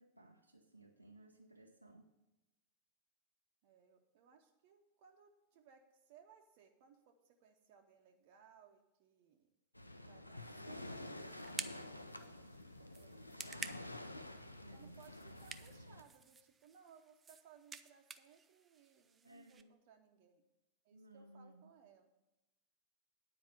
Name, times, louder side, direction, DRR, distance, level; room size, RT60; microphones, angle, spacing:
voice 1, 0.0-2.1 14.6-15.0 19.2-19.8 20.9-21.7, right 1 dB, 85° right, 0 dB, 0.7 m, -60 dB
voice 2, 3.6-9.5 10.0-13.9 14.7-20.4 20.8-22.1, right 7 dB, 45° right, 2 dB, 0.9 m, -65 dB
Waves surf, 9.7-16.0, left 1 dB, 85° left, 0.5 m, -50 dB
sound 1, 10.4-19.6, right 5 dB, 20° right, 0.5 m, -52 dB
9.6 x 4.7 x 7.9 m, 0.97 s
figure-of-eight pair, 90°, 0 cm